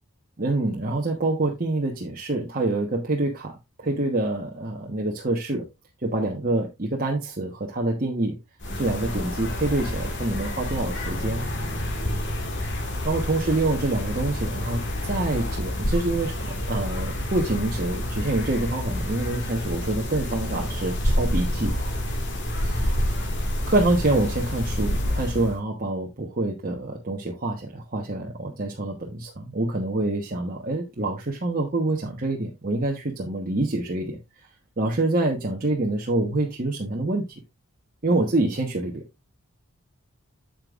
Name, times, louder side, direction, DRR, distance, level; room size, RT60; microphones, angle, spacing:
voice 1, 0.4-3.5 3.8-5.7 6.0-8.4 8.7-11.4 12.5-12.7 13.0-21.7 22.6-22.9 23.7-34.2 34.8-37.4 38.0-39.0, right 2 dB, 40° right, -1 dB, 1.1 m, -26 dB
sound 1, 8.6-25.6, left 1 dB, 50° left, 1.9 m, -28 dB
8.6 x 7.9 x 2.4 m, 0.21 s
head